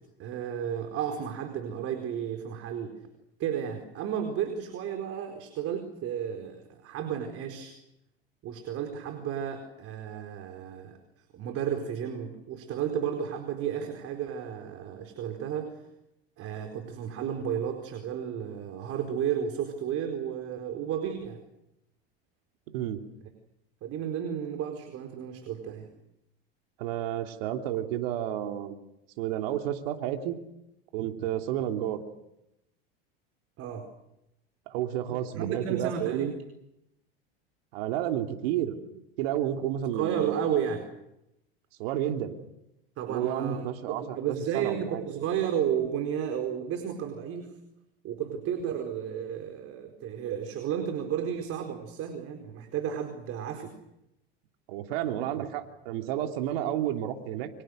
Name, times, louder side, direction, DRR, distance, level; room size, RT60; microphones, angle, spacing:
voice 1, 0.2-2.9 3.4-7.7 8.4-11.0 11.3-15.8 16.4-21.4 23.8-25.9 33.6-33.9 35.4-36.3 39.9-40.9 43.0-47.6 48.0-53.7, right 8 dB, 50° right, 5 dB, 4.5 m, -33 dB
voice 2, 22.7-23.0 26.8-28.7 29.2-30.3 30.9-32.0 34.7-36.3 37.7-40.4 41.8-42.4 43.1-45.0 54.7-57.5, right 11 dB, 70° right, 5 dB, 3.2 m, -31 dB
30.0 x 25.0 x 6.6 m, 0.86 s
hypercardioid pair, 100°, 31 cm